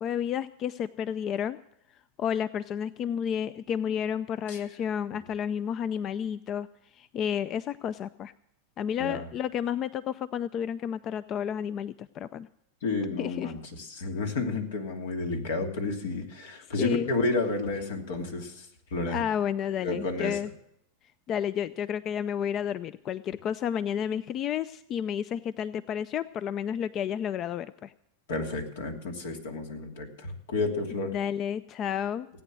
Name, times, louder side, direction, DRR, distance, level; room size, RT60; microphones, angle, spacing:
voice 1, 0.0-1.6 2.2-6.7 6.9-8.3 8.8-12.5 13.2-13.5 16.8-17.1 19.1-20.5 21.3-27.9 31.0-32.3, left 9 dB, 35° left, 16 dB, 0.4 m, -31 dB
voice 2, 12.8-18.6 18.9-19.2 19.8-20.4 28.3-31.1, left 3 dB, 80° left, 3 dB, 2.8 m, -31 dB
17.0 x 9.1 x 6.2 m, 0.78 s
supercardioid pair, 125°, 0 cm